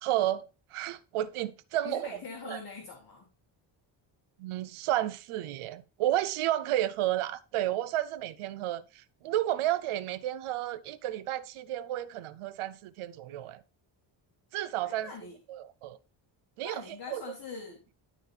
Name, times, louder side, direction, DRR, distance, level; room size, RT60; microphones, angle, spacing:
voice 1, 0.0-2.6 4.4-13.6 14.5-15.1 15.5-16.0 16.6-17.2, right 13 dB, 85° right, 0.7 m, -32 dB
voice 2, 1.8-3.3 14.8-15.4 16.6-17.8, left 5 dB, 45° left, 1.9 m, -43 dB
12.0 x 4.2 x 3.3 m
cardioid pair, 140°, 49 cm